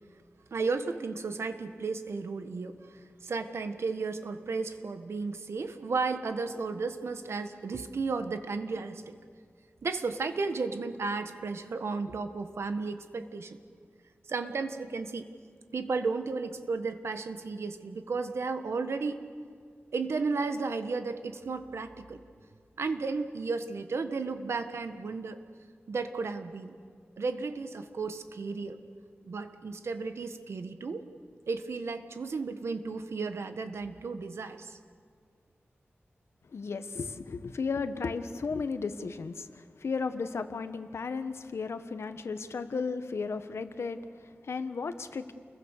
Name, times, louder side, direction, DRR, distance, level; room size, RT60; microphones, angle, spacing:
voice 1, 0.5-2.8 3.2-9.1 9.8-13.6 14.3-15.3 15.7-19.2 19.9-22.2 22.8-25.4 25.9-26.8 27.2-28.8 29.2-31.0 31.5-34.8, right 4 dB, 85° right, 9 dB, 1.5 m, -33 dB
voice 2, 36.5-45.3, left 4 dB, 85° left, 10 dB, 1.2 m, -34 dB
29.5 x 22.0 x 6.7 m, 2.1 s
wide cardioid pair, 115°, 4 cm